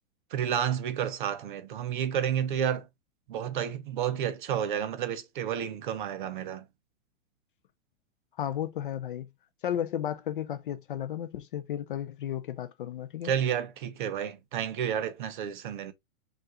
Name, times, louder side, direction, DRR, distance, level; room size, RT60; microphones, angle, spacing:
voice 1, 0.3-2.9 3.3-6.6 13.2-15.9, right 9 dB, 35° right, 0.5 m, -30 dB
voice 2, 8.4-9.3 9.6-13.3, left 10 dB, 40° left, 0.4 m, -33 dB
5.5 x 2.4 x 3.6 m
hypercardioid pair, 160°, 42 cm